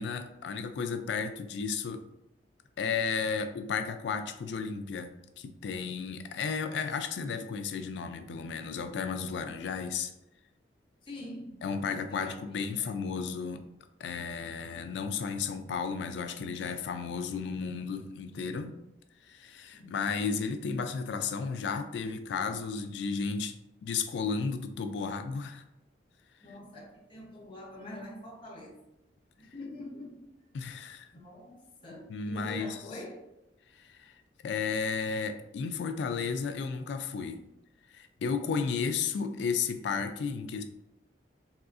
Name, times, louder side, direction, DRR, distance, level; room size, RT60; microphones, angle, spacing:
voice 1, 0.0-2.0 2.8-10.1 11.6-13.6 14.0-18.7 19.2-23.5 23.8-25.6 30.5-31.1 32.1-32.8 33.7-34.1 34.4-37.4 37.9-40.6, left 5 dB, 70° left, 8 dB, 0.3 m, -33 dB
voice 2, 11.0-11.5 11.8-13.0 19.7-20.0 26.4-28.8 29.4-30.2 31.1-31.6 31.8-33.2, left 1 dB, 30° left, -3 dB, 0.7 m, -45 dB
3.6 x 2.4 x 2.4 m, 0.88 s
head